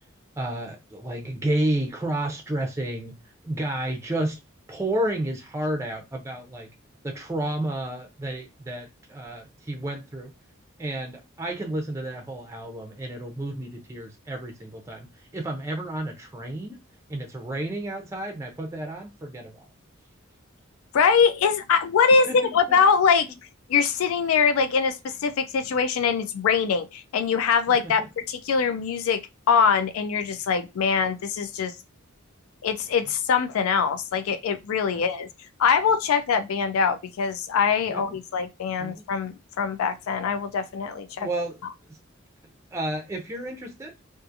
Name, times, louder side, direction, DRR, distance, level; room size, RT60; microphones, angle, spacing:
voice 1, 0.4-3.1 3.4-4.4 4.7-6.7 7.0-10.3 10.8-15.1 15.3-16.8 17.1-19.7 22.3-22.8 27.7-28.1 34.9-35.0 37.9-38.1 38.8-39.0 41.2-41.6 42.7-43.9, right 1 dB, 15° right, 0.4 m, -31 dB
voice 2, 20.9-23.3 23.7-29.2 29.5-31.7 32.6-35.3 35.6-41.3, left 6 dB, 90° left, 0.4 m, -23 dB
2.6 x 2.4 x 2.4 m
head